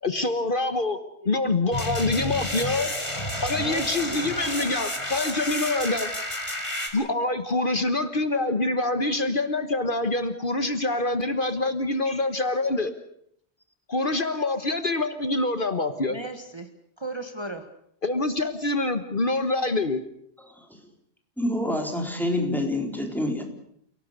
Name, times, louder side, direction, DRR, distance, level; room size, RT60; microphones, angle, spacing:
voice 1, 0.0-1.0 1.2-2.9 3.4-6.1 6.9-12.9 13.9-16.2 18.0-20.0, left 2 dB, 55° left, 9 dB, 1.5 m, -25 dB
sound 1, 1.7-6.9, left 1 dB, 25° left, 4.2 m, -31 dB
voice 2, 3.6-4.3 12.6-12.7 16.1-16.7 17.0-17.7, right 2 dB, 25° right, 6 dB, 1.7 m, -36 dB
voice 3, 21.4-23.4, left 1 dB, ahead, 2 dB, 4.3 m, -26 dB
29.5 x 18.0 x 6.7 m, 0.69 s
omnidirectional pair, 1.1 m